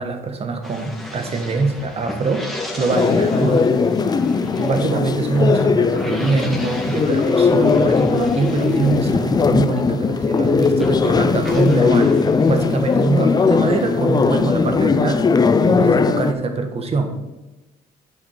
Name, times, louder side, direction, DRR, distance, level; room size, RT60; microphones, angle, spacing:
voice 1, 0.0-4.1 4.6-15.2 15.6-17.1, right 4 dB, 35° right, 5 dB, 1.5 m, -23 dB
sound 1, 0.6-10.5 10.8-14.6, left 1 dB, ahead, 1.8 m, -36 dB
sound 2, 2.9-16.3, left 5 dB, 25° left, 0.5 m, -18 dB
11.0 x 5.0 x 6.5 m, 1.0 s
cardioid pair, 110°, 17 cm